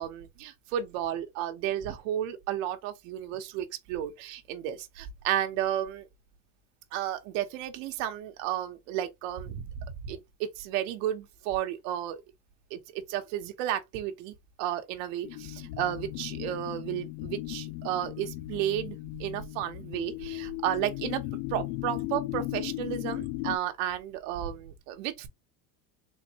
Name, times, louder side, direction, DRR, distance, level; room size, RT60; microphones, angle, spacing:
voice 1, 0.0-6.1 6.9-9.7 10.0-12.2 12.7-21.2 21.5-25.3, right 11 dB, 80° right, 0.9 m, -33 dB
sound 1, 15.2-23.6, left 18 dB, 75° left, 0.5 m, -37 dB
3.9 x 2.6 x 2.8 m
cardioid pair, 165°, 39 cm